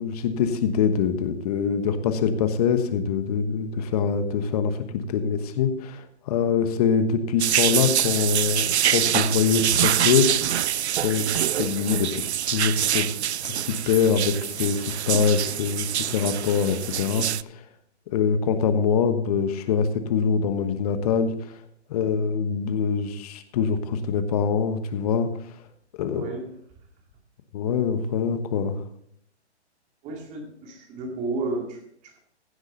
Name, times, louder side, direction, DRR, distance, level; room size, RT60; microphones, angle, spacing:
voice 1, 0.0-10.3 11.0-13.0 13.7-17.6 18.1-21.3 21.9-25.3 26.0-26.2 27.5-28.8, left 6 dB, 35° left, 9 dB, 1.2 m, -24 dB
sound 1, 7.4-17.4, right 10 dB, 70° right, 0.5 m, -25 dB
voice 2, 26.1-26.5 30.0-32.2, right 3 dB, 20° right, 2 dB, 2.2 m, -32 dB
16.0 x 8.0 x 3.9 m, 0.67 s
hypercardioid pair, 140°, 35 cm